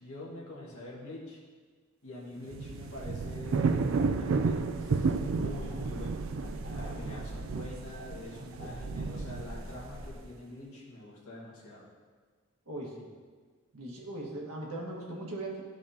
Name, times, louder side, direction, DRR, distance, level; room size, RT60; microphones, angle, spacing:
voice 1, 0.0-1.4 2.0-6.2 6.7-11.9, left 1 dB, 75° left, -4 dB, 1.8 m, -45 dB
sound 1, 2.4-10.0, right 4 dB, 65° right, 0.4 m, -32 dB
sound 2, 2.9-10.2, right 1 dB, 40° left, 1.9 m, -43 dB
voice 2, 6.8-7.2 12.7-13.1 13.7-15.6, right 1 dB, 85° right, -3 dB, 1.6 m, -39 dB
11.5 x 4.9 x 2.8 m, 1.5 s
head